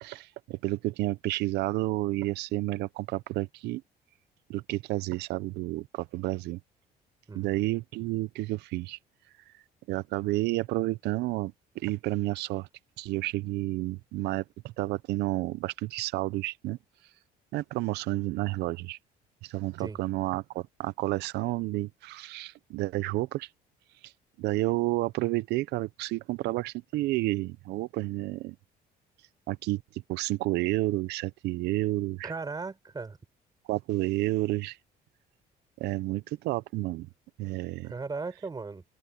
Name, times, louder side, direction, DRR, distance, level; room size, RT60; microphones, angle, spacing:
voice 1, 0.0-3.8 4.5-6.6 7.3-9.0 9.9-12.7 13.0-16.8 17.5-19.0 19.4-23.5 24.4-28.6 29.5-32.3 33.7-34.8 35.8-37.1 37.4-37.9, right 18 dB, 85° right, 0.6 m, -30 dB
voice 2, 7.3-7.6 19.8-20.0 32.2-33.2 37.8-38.8, right 4 dB, 25° right, 4.4 m, -37 dB
open air
cardioid pair, 110°, 17 cm